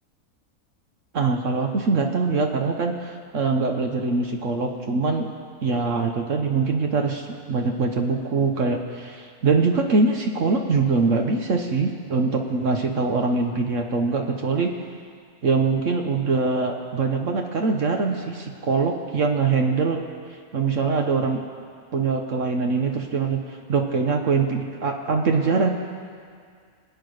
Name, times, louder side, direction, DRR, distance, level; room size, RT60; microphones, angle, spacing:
voice 1, 1.1-5.3 5.6-14.7 15.4-20.0 20.5-21.4 21.9-25.7, right 4 dB, 60° right, 3 dB, 1.3 m, -23 dB
23.5 x 8.8 x 6.5 m, 2.1 s
omnidirectional pair, 1.5 m